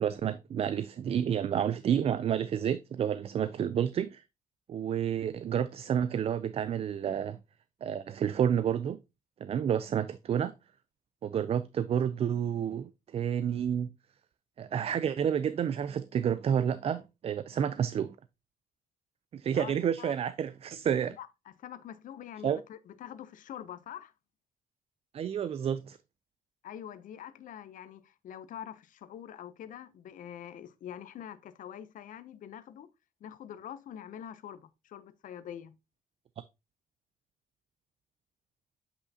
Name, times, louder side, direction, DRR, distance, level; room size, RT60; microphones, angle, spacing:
voice 1, 0.0-4.2 4.7-7.4 7.8-9.0 9.4-10.5 11.2-13.9 14.6-18.2 19.3-21.2 22.4-22.6 25.1-26.0, right 8 dB, 40° right, 0.4 m, -30 dB
voice 2, 19.6-20.1 21.2-21.3 21.6-24.1 26.6-32.9 33.2-35.8, left 10 dB, 60° left, 0.6 m, -45 dB
8.1 x 5.6 x 2.7 m
cardioid pair, 120°, 15 cm